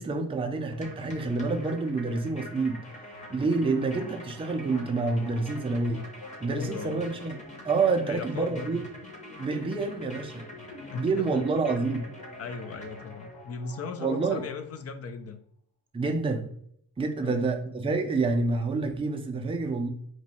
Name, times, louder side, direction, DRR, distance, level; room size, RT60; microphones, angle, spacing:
voice 1, 0.0-2.8 3.3-6.0 6.4-7.4 7.6-8.8 9.4-10.4 11.0-12.1 14.0-14.4 15.9-16.5 17.0-19.9, right 3 dB, 15° right, 4 dB, 0.4 m, -28 dB
sound 1, 0.7-13.5, left 1 dB, 20° left, 0.9 m, -47 dB
sound 2, 2.5-15.1, left 2 dB, 80° left, 1.2 m, -49 dB
voice 2, 6.5-7.1 8.1-8.8 10.9-11.4 12.4-15.4 17.2-17.4, left 4 dB, 40° left, 9 dB, 0.5 m, -37 dB
3.0 x 2.6 x 4.2 m, 0.67 s
cardioid pair, 115°, 38 cm